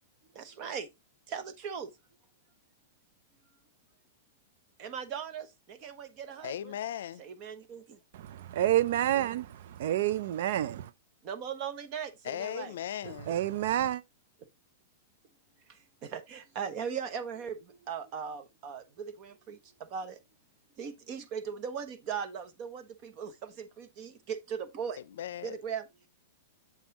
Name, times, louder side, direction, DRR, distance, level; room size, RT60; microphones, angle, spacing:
voice 1, 0.3-0.9 1.3-1.9 4.8-6.7 7.2-8.0 11.2-12.7 13.0-13.1 15.7-20.2 20.8-25.0 25.4-25.9, right 7 dB, 30° right, 0.9 m, -39 dB
voice 2, 6.4-7.2 12.2-13.3 25.1-25.6, left 10 dB, 70° left, 0.5 m, -37 dB
voice 3, 8.5-10.9 13.3-14.0, right 12 dB, 55° right, 0.4 m, -28 dB
7.3 x 5.4 x 2.9 m
supercardioid pair, 165°, 0 cm